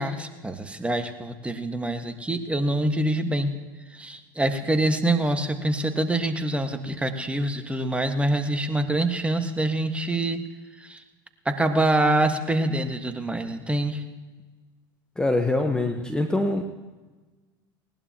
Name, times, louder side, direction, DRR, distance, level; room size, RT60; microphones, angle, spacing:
voice 1, 0.0-3.5 3.9-10.4 10.8-11.0 11.4-14.0, right 1 dB, 10° right, 7 dB, 1.5 m, -25 dB
voice 2, 15.2-16.6, left 2 dB, 5° left, 4 dB, 1.1 m, -24 dB
19.5 x 18.5 x 2.9 m, 1.3 s
hypercardioid pair, 80°, 12 cm